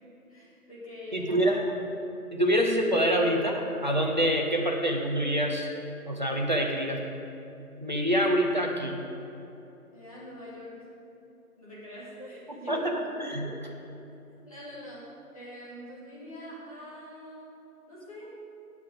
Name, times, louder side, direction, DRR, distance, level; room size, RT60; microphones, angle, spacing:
voice 1, 0.3-1.5 9.9-10.9 11.6-12.9 13.4-13.5 14.3-15.1 15.3-17.5 17.9-18.4, left 1 dB, 25° left, -8 dB, 2.1 m, -44 dB
voice 2, 1.1-1.6 2.3-5.7 6.0-7.0 7.8-9.0 12.7-12.9 13.2-13.5, equal, 30° right, 1 dB, 0.9 m, -26 dB
16.5 x 7.8 x 3.8 m, 2.8 s
figure-of-eight pair, 165°, 45 cm